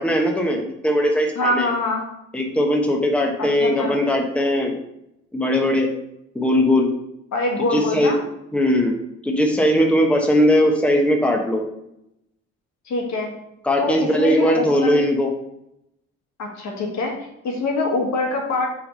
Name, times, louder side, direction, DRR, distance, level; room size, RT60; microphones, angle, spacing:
voice 1, 0.0-1.7 2.3-4.8 5.3-5.9 6.3-6.9 7.7-8.2 8.5-9.0 9.2-11.6 13.6-15.3, equal, 5° left, 2 dB, 0.9 m, -19 dB
voice 2, 1.3-2.0 3.4-3.9 7.3-8.2 12.8-13.3 13.8-14.9 16.4-17.1 17.4-18.7, left 2 dB, 65° left, 0 dB, 1.7 m, -24 dB
5.7 x 3.6 x 5.3 m, 0.82 s
cardioid pair, 90°, 30 cm